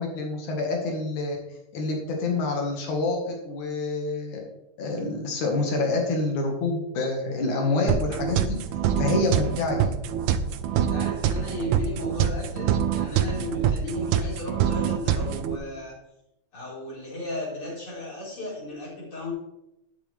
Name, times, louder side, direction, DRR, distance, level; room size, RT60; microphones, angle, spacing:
voice 1, 0.0-1.4 1.7-4.4 4.8-8.5 9.0-9.9, left 3 dB, 80° left, 1 dB, 3.4 m, -27 dB
sound 1, 7.9-15.6, right 9 dB, 75° right, 2.0 m, -25 dB
voice 2, 10.7-16.0 16.5-19.3, left 2 dB, 45° left, -6 dB, 5.6 m, -35 dB
12.0 x 9.1 x 3.6 m, 0.86 s
omnidirectional pair, 3.3 m